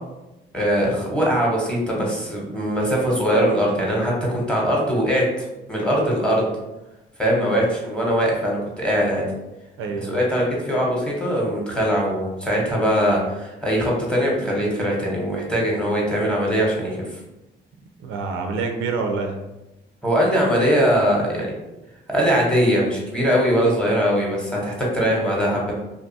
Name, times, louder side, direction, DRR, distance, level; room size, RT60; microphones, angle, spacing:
voice 1, 0.5-6.5 7.2-9.2 10.1-17.0 20.0-21.5 22.1-25.7, equal, 5° left, -4 dB, 0.9 m, -21 dB
voice 2, 9.8-10.2 18.0-19.4, right 4 dB, 85° right, 4 dB, 0.4 m, -27 dB
2.6 x 2.3 x 2.6 m, 0.98 s
cardioid pair, 90°, 20 cm